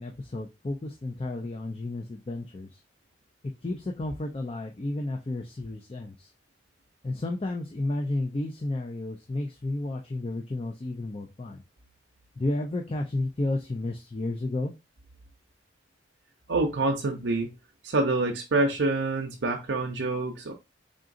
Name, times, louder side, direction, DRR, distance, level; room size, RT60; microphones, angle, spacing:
voice 1, 0.0-2.8 3.6-6.3 7.0-11.6 12.4-14.7, left 2 dB, 30° left, 0.4 m, -32 dB
voice 2, 16.5-17.5 17.8-20.5, right 2 dB, 80° right, 0.6 m, -26 dB
3.8 x 3.7 x 2.5 m
head